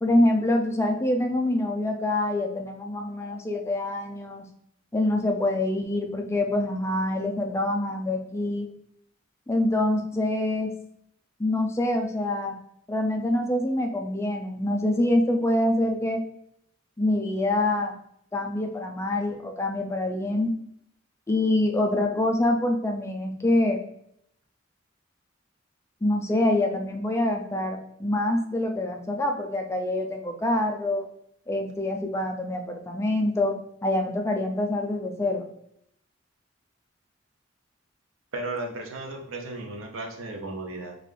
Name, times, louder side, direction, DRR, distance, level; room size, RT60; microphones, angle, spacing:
voice 1, 0.0-4.5 4.9-8.7 9.5-10.7 11.4-12.5 12.9-16.2 17.0-17.9 18.3-20.5 21.3-23.8 26.0-31.1 31.5-33.5 33.8-35.5, left 1 dB, 15° left, 3 dB, 0.3 m, -25 dB
voice 2, 38.3-41.0, right 2 dB, 90° right, 3 dB, 0.6 m, -35 dB
3.7 x 2.4 x 3.1 m, 0.71 s
head